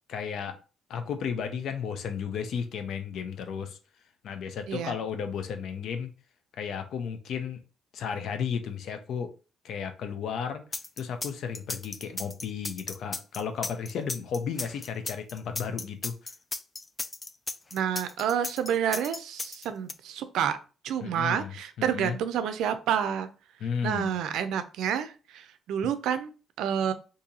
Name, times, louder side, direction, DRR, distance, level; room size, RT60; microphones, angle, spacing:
voice 1, 0.1-0.6 0.9-3.8 4.2-6.1 6.6-7.6 7.9-9.3 9.6-10.6 11.0-16.1 21.0-21.5 21.8-22.2 23.6-24.1, left 7 dB, 75° left, 0.6 m, -33 dB
voice 2, 4.7-5.0 17.7-20.6 20.8-23.3 23.8-26.3 26.6-26.9, right 9 dB, 85° right, 0.4 m, -29 dB
sound 1, 10.7-19.9, left 3 dB, 25° left, 0.3 m, -35 dB
2.7 x 2.6 x 3.9 m
cardioid pair, 90°, 0 cm